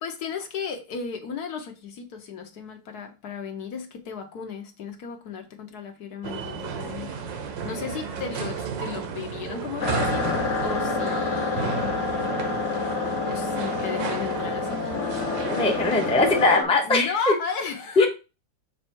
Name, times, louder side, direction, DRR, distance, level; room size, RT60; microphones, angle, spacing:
voice 1, 0.0-7.2 7.6-11.9 13.3-15.2 16.9-18.1, left 6 dB, 65° left, 1.3 m, -34 dB
sound 1, 6.2-16.5, right 6 dB, 85° right, 1.6 m, -33 dB
sound 2, 9.8-16.6, left 4 dB, 50° left, 1.2 m, -28 dB
voice 2, 15.5-17.3 18.0-18.1, left 2 dB, 5° left, 0.7 m, -21 dB
6.9 x 3.2 x 4.5 m
omnidirectional pair, 2.0 m